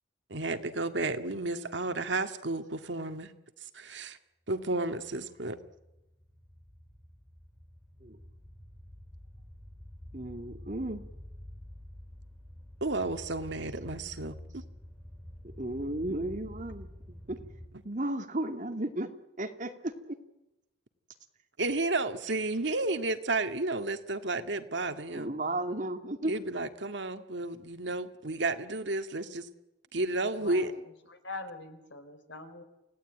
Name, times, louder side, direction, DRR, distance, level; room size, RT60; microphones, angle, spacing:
voice 1, 0.3-3.3 3.7-4.2 4.5-5.6 12.8-14.6 21.6-25.3 26.3-29.5 29.9-30.7, right 2 dB, 70° right, 8 dB, 2.0 m, -32 dB
sound 1, 5.0-17.7, left 1 dB, 5° left, 6.5 m, -48 dB
voice 2, 10.1-11.0 15.6-17.4 17.8-19.1 19.4-20.2 25.1-26.3, right 1 dB, 45° right, 5 dB, 2.7 m, -34 dB
voice 3, 30.4-32.6, left 2 dB, 75° left, 9 dB, 4.0 m, -44 dB
29.0 x 17.5 x 9.2 m, 0.94 s
head